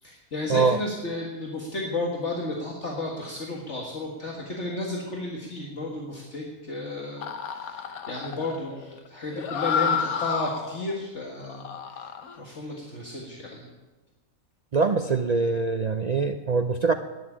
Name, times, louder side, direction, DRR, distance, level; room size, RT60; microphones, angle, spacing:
voice 1, 0.0-11.6 11.9-12.1 12.4-13.7, left 2 dB, 55° left, -2 dB, 2.1 m, -33 dB
sound 1, 7.2-10.9 11.4-12.4, left 7 dB, 85° left, 1.4 m, -30 dB
voice 2, 14.7-16.9, right 4 dB, 60° right, 7 dB, 0.4 m, -23 dB
11.0 x 9.7 x 9.9 m, 1.2 s
omnidirectional pair, 1.5 m